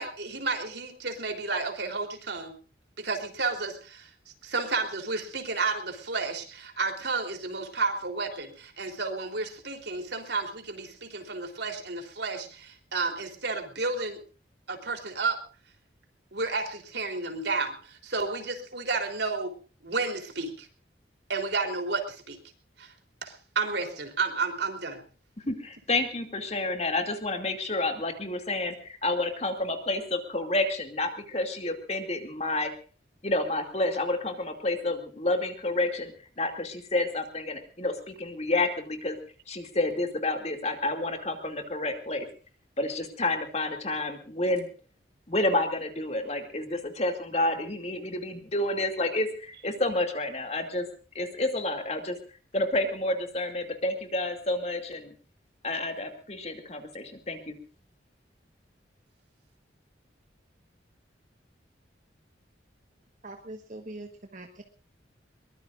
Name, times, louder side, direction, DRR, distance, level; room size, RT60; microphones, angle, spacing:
voice 1, 0.0-2.5 3.0-4.1 4.4-14.2 14.7-15.4 16.3-19.5 19.8-20.7 21.3-22.4 22.8-22.9 23.2-25.0, right 4 dB, 65° right, 5 dB, 3.6 m, -31 dB
voice 2, 25.5-32.7 33.2-39.2 39.5-42.3 42.8-44.7 45.3-50.9 51.1-52.2 52.5-55.1 55.6-57.6, left 2 dB, 35° left, 5 dB, 2.6 m, -29 dB
voice 3, 63.2-64.6, right 2 dB, 40° right, 4 dB, 1.4 m, -42 dB
22.5 x 20.5 x 2.6 m, 0.38 s
head